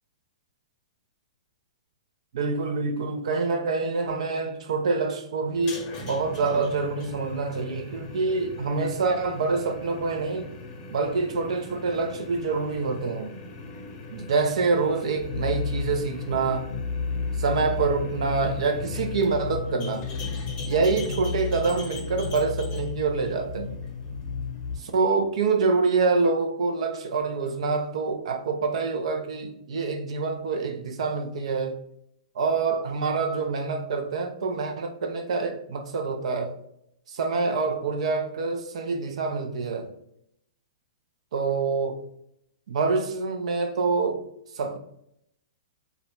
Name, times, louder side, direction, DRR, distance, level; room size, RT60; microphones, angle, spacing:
voice 1, 2.3-10.5 10.9-13.3 14.1-16.7 17.4-20.1 20.7-23.7 24.8-31.8 32.4-36.5 37.1-39.9 41.3-42.0 42.7-44.2 44.6-44.8, right 4 dB, 70° right, 6 dB, 0.4 m, -26 dB
sound 1, 5.5-24.9, left 2 dB, 30° left, 0.6 m, -41 dB
sound 2, 15.2-24.8, left 5 dB, 75° left, 0.6 m, -32 dB
2.4 x 2.1 x 2.9 m, 0.73 s
hypercardioid pair, 135°, 3 cm